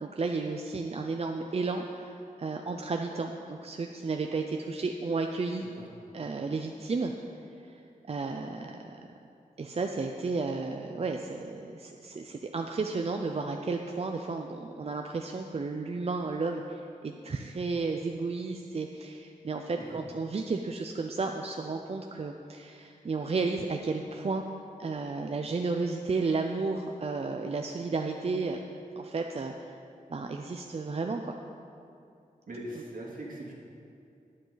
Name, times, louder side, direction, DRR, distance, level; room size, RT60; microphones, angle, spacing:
voice 1, 0.0-5.6 6.1-7.1 7.6-7.7 8.1-9.0 9.6-24.4 24.8-28.6 29.0-29.7 30.1-31.4, right 3 dB, 45° right, 3 dB, 0.6 m, -33 dB
voice 2, 32.5-33.5, right 1 dB, 70° right, -3 dB, 2.4 m, -41 dB
20.5 x 7.6 x 4.0 m, 2.6 s
wide cardioid pair, 120°, 15 cm